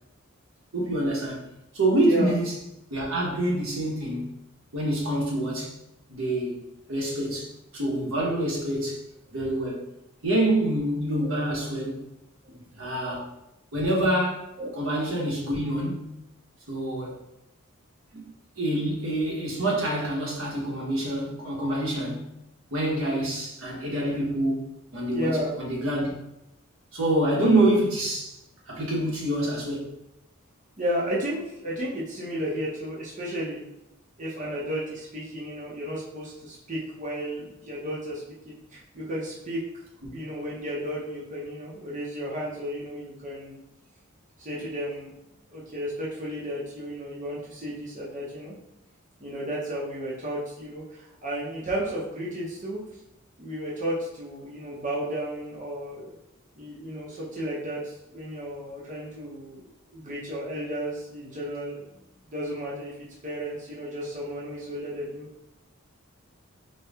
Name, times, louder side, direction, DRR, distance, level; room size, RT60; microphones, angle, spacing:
voice 1, 0.7-1.4 1.7-2.5 2.9-4.3 4.7-5.7 6.1-7.5 7.7-9.0 9.3-9.8 10.2-12.1 12.8-13.3 13.7-16.1 16.7-17.2 18.6-22.3 22.7-24.7 24.9-26.1 26.9-28.4 28.7-29.9 40.0-40.1, right 1 dB, 75° right, 1.2 m, -26 dB
voice 2, 12.4-13.3 14.6-14.7 25.1-25.5 30.8-33.6 34.2-39.8 40.1-43.6 44.4-45.1 45.5-48.5 49.2-52.8 53.4-56.1 56.5-59.7 59.9-61.8 62.3-63.0 63.2-65.3, equal, 35° right, 0.9 m, -33 dB
4.3 x 2.3 x 3.6 m
head